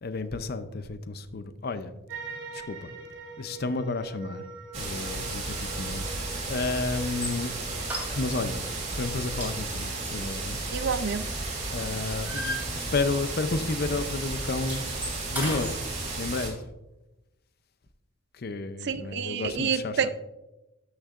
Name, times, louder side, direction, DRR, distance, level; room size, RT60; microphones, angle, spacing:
voice 1, 0.0-1.9 2.5-2.9 3.4-4.4 4.7-6.0 6.5-7.5 8.1-10.6 11.7-14.9 15.3-15.8 16.1-16.6 18.3-20.1, left 3 dB, 50° left, 0.5 m, -31 dB
sound 1, 2.1-9.7, right 3 dB, 75° right, 2.5 m, -44 dB
sound 2, 4.7-16.5, right 2 dB, 35° right, 2.1 m, -33 dB
sound 3, 7.1-7.4 7.8-8.6 8.9-9.1 9.4-11.5 11.8-13.3 13.5-13.7 14.0-15.7, equal, 10° right, 2.8 m, -36 dB
voice 2, 10.7-11.3 18.8-20.1, right 6 dB, 60° right, 0.4 m, -28 dB
12.0 x 6.4 x 2.5 m
head